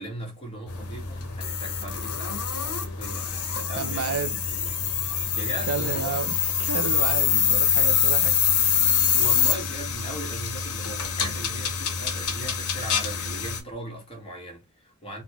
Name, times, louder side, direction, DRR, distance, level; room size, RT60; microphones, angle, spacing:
voice 1, 0.0-4.7 5.3-6.2 9.1-15.2, right 1 dB, 25° left, 1.2 m, -39 dB
sound 1, 0.7-13.6, left 7 dB, 90° left, 0.7 m, -25 dB
voice 2, 3.6-4.4 5.7-8.4, right 6 dB, 75° right, 0.5 m, -31 dB
4.1 x 2.1 x 2.9 m
head